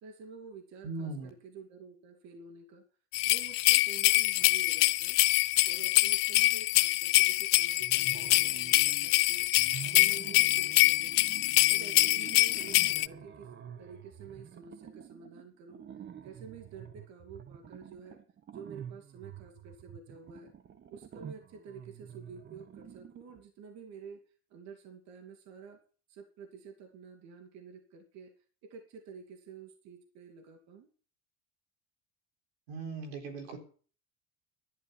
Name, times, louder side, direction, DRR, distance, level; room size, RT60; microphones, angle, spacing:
voice 1, 0.0-2.8 3.2-5.2 5.6-9.5 9.8-11.3 11.7-13.5 13.8-15.8 16.2-18.2 18.5-20.5 20.9-25.8 26.1-30.9, right 5 dB, 60° right, 4 dB, 2.6 m, -50 dB
voice 2, 0.8-1.3 32.7-33.6, right 3 dB, 90° right, 4 dB, 4.0 m, -38 dB
sound 1, 3.1-13.1, left 20 dB, 75° left, 0.7 m, -25 dB
sound 2, 7.8-9.2 9.5-23.4, right 9 dB, 35° right, 1.2 m, -48 dB
11.5 x 10.5 x 7.1 m, 0.41 s
supercardioid pair, 85°, 30 cm